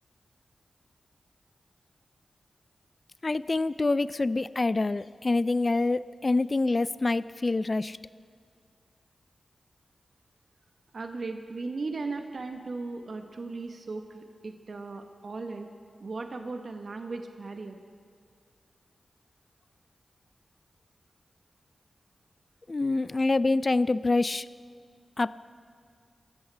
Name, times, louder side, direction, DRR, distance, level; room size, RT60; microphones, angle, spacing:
voice 1, 3.2-8.0 22.7-24.5 25.2-25.4, left 3 dB, 45° left, 16 dB, 0.4 m, -26 dB
voice 2, 10.9-15.7 16.0-17.8, right 3 dB, 65° right, 5 dB, 1.1 m, -37 dB
26.0 x 13.5 x 3.4 m, 2.1 s
cardioid pair, 40°, 0 cm